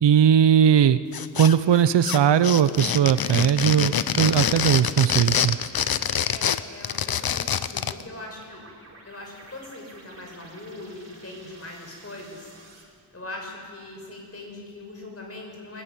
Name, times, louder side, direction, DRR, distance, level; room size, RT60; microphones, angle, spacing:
voice 1, 0.0-1.0 1.4-5.6, right 9 dB, 85° right, 14 dB, 0.8 m, -19 dB
sound 1, 1.1-1.8 2.0-8.0, left 8 dB, 60° left, 0.8 m, -25 dB
sound 2, 3.1-3.6 7.3-12.8, right 2 dB, 35° right, 5.2 m, -51 dB
voice 2, 6.2-8.6 9.1-12.5 13.1-15.8, left 2 dB, 35° left, 1 dB, 5.9 m, -41 dB
21.5 x 15.5 x 9.7 m, 2.3 s
wide cardioid pair, 80°, 41 cm